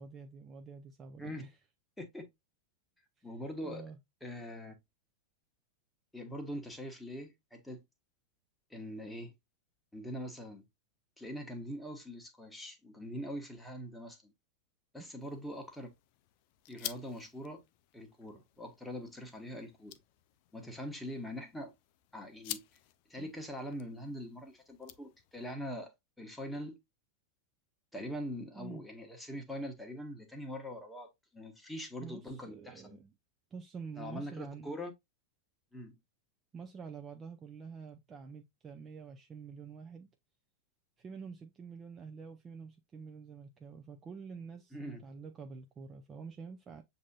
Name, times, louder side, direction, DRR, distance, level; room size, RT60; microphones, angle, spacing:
voice 1, 0.0-1.5 3.2-3.3 3.6-4.0 15.0-15.1 23.2-23.3 28.6-28.8 32.0-33.1 33.5-34.7 36.5-40.1 41.0-46.8, right 5 dB, 20° right, 0.5 m, -47 dB
voice 2, 3.2-3.9 4.2-4.7 6.1-7.8 8.7-9.3 9.9-10.6 11.2-14.3 14.9-15.9 16.7-17.6 17.9-20.0 20.5-21.7 22.1-22.6 23.1-25.9 26.2-26.8 27.9-33.0 34.0-34.9 35.7-35.9 44.7-45.0, equal, 5° left, 1.1 m, -43 dB
sound 1, 15.2-25.5, left 14 dB, 45° left, 0.4 m, -50 dB
7.2 x 2.7 x 2.2 m
figure-of-eight pair, 90°, 0 cm